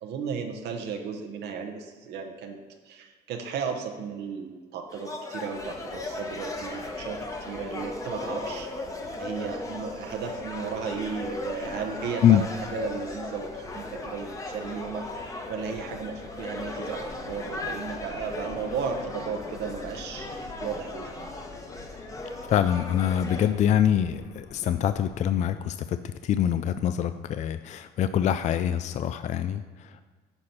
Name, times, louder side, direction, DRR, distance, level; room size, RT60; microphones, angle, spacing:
voice 1, 0.0-2.6 2.9-8.7 9.2-20.3 20.6-21.3, right 6 dB, 75° right, 4 dB, 1.0 m, -35 dB
sound 1, 4.9-23.5, left 2 dB, 20° left, 1.2 m, -37 dB
sound 2, 5.5-25.3, left 4 dB, 70° left, 1.3 m, -47 dB
voice 2, 22.5-30.0, left 10 dB, 45° left, 11 dB, 0.4 m, -24 dB
9.8 x 4.4 x 5.6 m, 1.5 s
cardioid pair, 110°, 17 cm